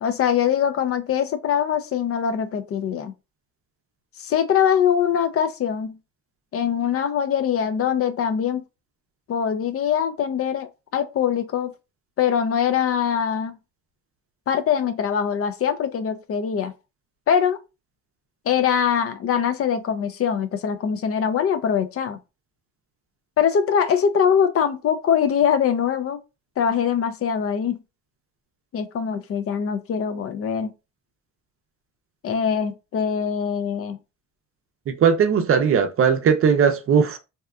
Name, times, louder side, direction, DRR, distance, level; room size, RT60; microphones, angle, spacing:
voice 1, 0.0-3.1 4.2-6.0 6.5-8.6 9.3-11.7 12.2-13.6 14.5-16.7 17.3-17.6 18.5-22.2 23.4-26.2 26.6-27.8 28.7-30.7 32.2-34.0, left 8 dB, 50° left, 0.4 m, -22 dB
voice 2, 34.9-37.2, right 7 dB, 45° right, 0.5 m, -18 dB
2.7 x 2.3 x 2.3 m
cardioid pair, 90°, 30 cm